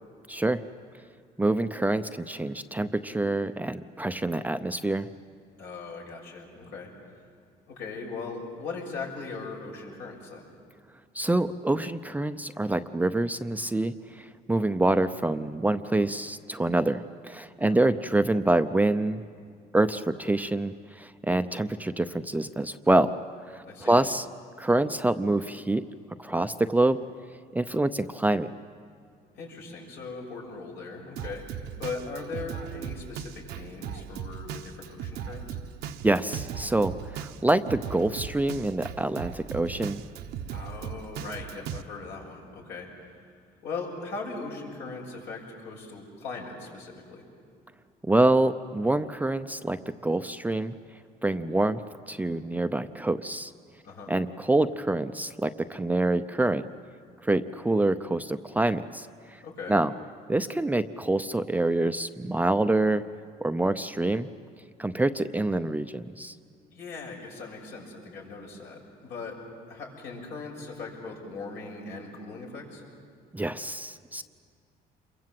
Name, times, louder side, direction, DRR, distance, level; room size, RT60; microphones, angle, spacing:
voice 1, 0.3-0.6 1.4-5.1 11.1-19.2 19.7-23.1 23.5-24.3 24.6-25.8 26.2-27.0 27.5-28.5 36.0-40.0 48.1-50.8 51.2-51.8 52.1-53.5 54.1-56.6 57.2-59.4 59.7-59.9 60.3-63.0 63.4-64.3 64.8-66.3 73.3-74.2, right 2 dB, 10° right, 9 dB, 0.6 m, -26 dB
voice 2, 5.6-7.2 7.7-10.5 17.6-17.9 23.6-24.0 29.3-35.6 40.5-43.1 43.6-47.3 53.8-54.1 59.4-59.8 66.7-69.4 69.7-72.8, left 4 dB, 75° left, -1 dB, 6.9 m, -39 dB
Drum kit, 31.2-41.8, right 8 dB, 85° right, 1.1 m, -38 dB
28.0 x 23.0 x 7.8 m, 2.2 s
cardioid pair, 110°, 17 cm